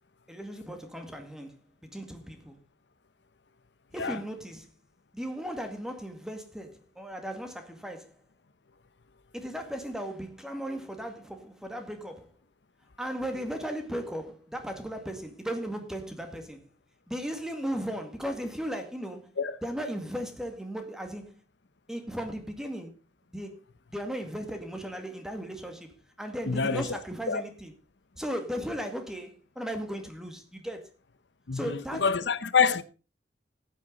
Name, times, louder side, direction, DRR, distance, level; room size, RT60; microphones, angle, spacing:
voice 1, 0.3-1.5 1.8-2.6 3.9-4.7 5.1-8.2 9.3-12.3 13.0-16.7 17.1-19.3 19.6-21.4 21.9-22.9 23.3-23.6 23.9-27.7 28.2-30.9 31.5-32.1, equal, 5° right, 2.0 m, -36 dB
voice 2, 26.5-26.9 27.3-27.4 31.5-32.8, left 5 dB, 90° left, 0.9 m, -26 dB
15.0 x 9.3 x 4.0 m
head